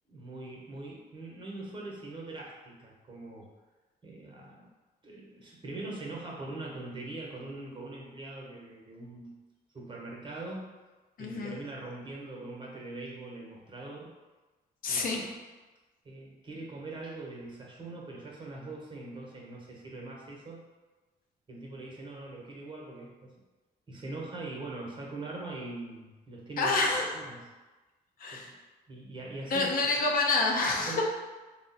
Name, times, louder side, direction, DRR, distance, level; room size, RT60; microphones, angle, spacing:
voice 1, 0.1-3.5 4.0-4.7 5.0-9.3 9.7-10.7 11.2-14.1 14.9-15.3 16.0-20.6 21.5-23.3 23.9-26.7 27.1-27.5 28.3-28.5 28.9-29.7 30.8-31.0, right 2 dB, 30° right, -2 dB, 1.0 m, -42 dB
voice 2, 11.2-11.6 14.8-15.3 26.6-27.1 28.2-28.5 29.5-31.0, left 3 dB, 55° left, 0 dB, 0.6 m, -28 dB
3.5 x 2.1 x 4.0 m, 1.2 s
cardioid pair, 100°, 17 cm